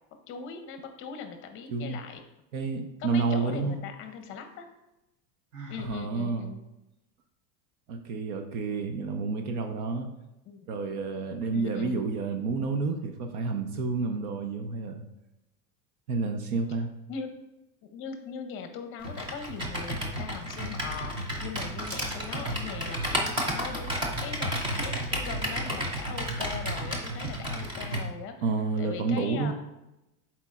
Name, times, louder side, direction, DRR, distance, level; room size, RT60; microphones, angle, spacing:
voice 1, 0.3-2.2 3.0-4.7 5.7-6.6 10.5-10.7 11.5-12.1 17.1-17.3 17.8-28.4 28.8-29.5, left 6 dB, 30° left, 6 dB, 0.6 m, -40 dB
voice 2, 2.5-3.8 5.8-6.5 7.9-10.1 10.7-15.0 16.1-16.9 28.4-29.5, right 4 dB, 70° right, 5 dB, 0.9 m, -30 dB
Sigh, 5.5-6.0, right 2 dB, 40° right, 1.0 m, -43 dB
Computer keyboard, 19.0-28.1, equal, 10° right, 0.3 m, -32 dB
11.0 x 4.4 x 2.4 m, 0.93 s
supercardioid pair, 155°, 46 cm